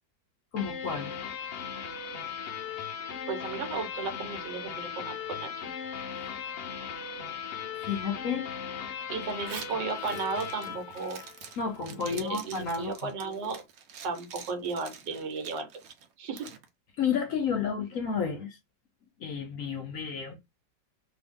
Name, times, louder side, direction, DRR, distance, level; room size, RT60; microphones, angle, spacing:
voice 1, 0.5-1.2 7.8-8.5 11.6-13.1 17.0-18.6 19.2-20.4, left 6 dB, 65° left, 0.9 m, -31 dB
sound 1, 0.6-11.8, left 7 dB, 90° left, 0.5 m, -38 dB
voice 2, 3.3-5.7 9.1-11.2 12.1-13.6 14.0-15.7 16.2-16.5, right 4 dB, 80° right, 1.5 m, -35 dB
Zipper (clothing), 9.3-16.7, right 7 dB, 65° right, 1.0 m, -47 dB
2.7 x 2.6 x 3.5 m
omnidirectional pair, 1.9 m